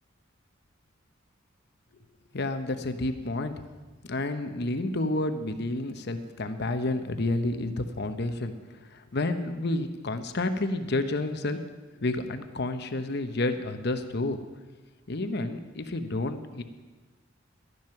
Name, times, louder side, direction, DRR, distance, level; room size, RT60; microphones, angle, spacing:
voice 1, 2.3-3.5 4.0-11.6 11.9-14.4 15.1-16.6, left 2 dB, 55° left, 8 dB, 0.9 m, -30 dB
12.5 x 11.0 x 5.8 m, 1.3 s
head